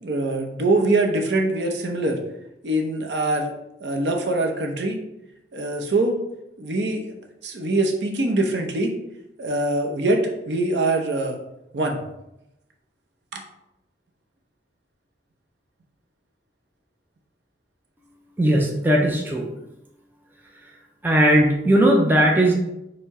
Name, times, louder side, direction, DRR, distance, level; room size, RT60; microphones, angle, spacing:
voice 1, 0.0-2.2 2.6-3.5 3.8-5.0 5.5-6.2 6.6-7.1 7.4-8.9 9.4-11.4 11.7-12.0 13.3-13.4, right 2 dB, 65° right, 2 dB, 0.6 m, -23 dB
voice 2, 18.4-19.5 21.0-22.5, right 1 dB, 10° right, 0 dB, 0.4 m, -18 dB
4.4 x 2.1 x 4.6 m, 0.87 s
head